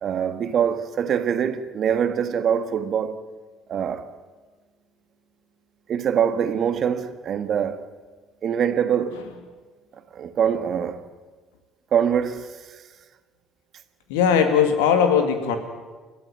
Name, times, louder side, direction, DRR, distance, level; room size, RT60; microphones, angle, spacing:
voice 1, 0.0-3.2 3.7-4.1 5.9-7.8 8.4-9.2 10.1-11.0 11.9-12.5, right 8 dB, 50° right, 1.5 m, -23 dB
voice 2, 14.1-15.6, left 7 dB, 70° left, 2.3 m, -19 dB
29.0 x 13.0 x 9.1 m
figure-of-eight pair, 55°, 0 cm